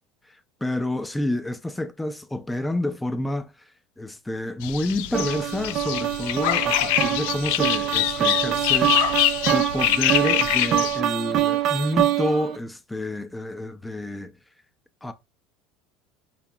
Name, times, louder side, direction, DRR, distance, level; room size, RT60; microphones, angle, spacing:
voice 1, 0.3-3.5 4.0-9.0 9.5-14.4 15.0-15.1, left 1 dB, 10° left, 0.5 m, -29 dB
sound 1, 4.6-11.0, left 14 dB, 80° left, 0.3 m, -24 dB
sound 2, 5.1-12.6, right 12 dB, 50° right, 0.5 m, -25 dB
4.8 x 2.7 x 2.3 m
supercardioid pair, 125°, 0 cm